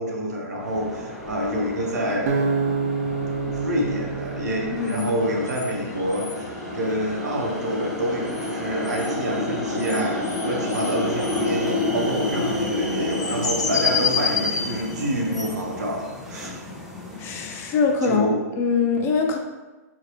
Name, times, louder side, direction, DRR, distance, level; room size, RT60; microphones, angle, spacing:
voice 1, 0.0-2.5 3.5-16.6 18.0-18.4, equal, 75° right, -1 dB, 1.1 m, -27 dB
sound 1, 0.6-18.1, left 2 dB, 5° right, 0.9 m, -31 dB
Acoustic guitar, 2.3-5.5, right 5 dB, 50° right, 0.5 m, -27 dB
voice 2, 4.7-5.1 17.2-18.3 18.6-19.4, left 5 dB, 25° left, 3 dB, 0.6 m, -23 dB
sound 2, 4.8-15.0, left 6 dB, 80° left, 0.7 m, -31 dB
4.6 x 3.7 x 3.1 m, 1.2 s
hypercardioid pair, 125°, 9 cm